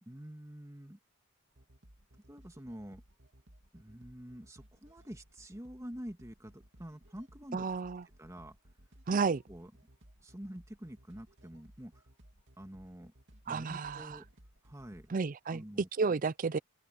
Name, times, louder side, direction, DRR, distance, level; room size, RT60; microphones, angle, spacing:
voice 1, 0.0-1.0 2.3-3.0 3.7-7.7 8.2-8.6 9.1-9.2 9.5-9.7 10.2-12.0 12.6-13.1 13.5-14.3 14.6-15.1 15.5-15.9, equal, 15° right, 1.7 m, -47 dB
sound 1, 1.5-15.2, equal, 60° right, 2.8 m, -60 dB
voice 2, 7.5-8.0 9.1-9.4 13.5-14.1 15.1-15.6 16.0-16.6, right 4 dB, 40° right, 0.4 m, -31 dB
open air
head